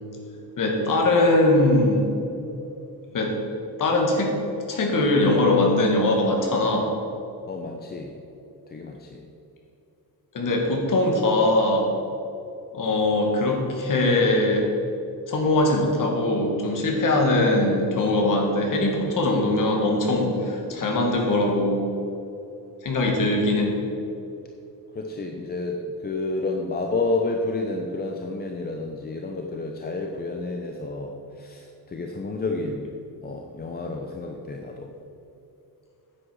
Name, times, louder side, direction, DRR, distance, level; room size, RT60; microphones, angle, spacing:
voice 1, 0.6-2.2 3.1-3.3 3.8-4.3 4.7-6.9 10.3-11.9 12.7-14.7 15.3-21.9 22.8-23.8, left 2 dB, 55° left, 1 dB, 2.1 m, -21 dB
voice 2, 7.5-8.2 8.7-9.3 24.9-32.9 33.2-34.9, left 3 dB, 25° left, 2 dB, 0.6 m, -30 dB
9.7 x 8.2 x 6.3 m, 2.8 s
wide cardioid pair, 175°, 39 cm